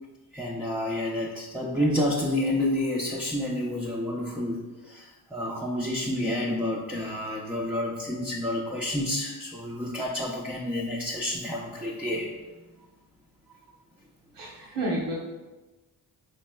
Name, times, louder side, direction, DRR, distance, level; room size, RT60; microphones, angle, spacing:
voice 1, 0.3-12.3, left 1 dB, 5° right, -4 dB, 0.5 m, -29 dB
voice 2, 14.3-15.1, right 1 dB, 85° right, -4 dB, 1.0 m, -30 dB
4.0 x 3.2 x 2.2 m, 1.1 s
supercardioid pair, 45°, 49 cm